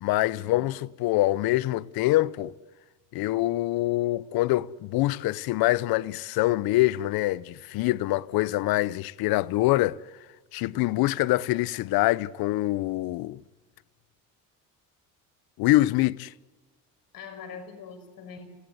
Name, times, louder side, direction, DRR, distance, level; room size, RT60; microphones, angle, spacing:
voice 1, 0.0-2.5 3.1-10.0 10.5-13.4 15.6-16.3, left 17 dB, 80° left, 0.8 m, -25 dB
voice 2, 10.6-11.0 17.1-18.5, left 5 dB, 65° left, 5.6 m, -43 dB
27.0 x 18.0 x 7.9 m
cardioid pair, 90°, 36 cm